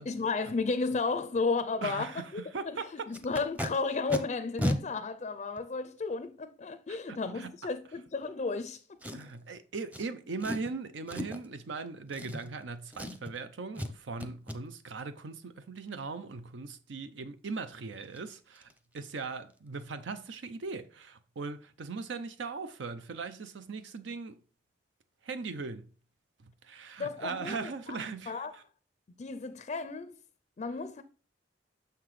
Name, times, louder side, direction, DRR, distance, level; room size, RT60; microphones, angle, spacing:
voice 1, 0.0-2.4 2.7-2.8 3.1-8.8 27.0-28.0 28.3-28.5 29.2-30.2 30.6-31.0, left 4 dB, 40° left, 0.4 m, -33 dB
voice 2, 1.8-3.1 7.1-7.5 9.1-24.4 25.2-25.9 26.4-28.6, right 4 dB, 85° right, 0.6 m, -39 dB
Packing tape duct tape, 3.1-3.7 4.1-4.2 4.6-4.8 5.6-5.7 9.0-9.4 9.9-10.0 10.4-10.7 11.1-11.5 12.1-12.7 12.9-13.4 13.8-13.9 14.2-14.6 17.6-17.7 18.0-18.2 18.6-18.7 19.0-19.2 19.5-19.6, equal, 10° right, 0.6 m, -34 dB
6.6 x 5.8 x 3.1 m
head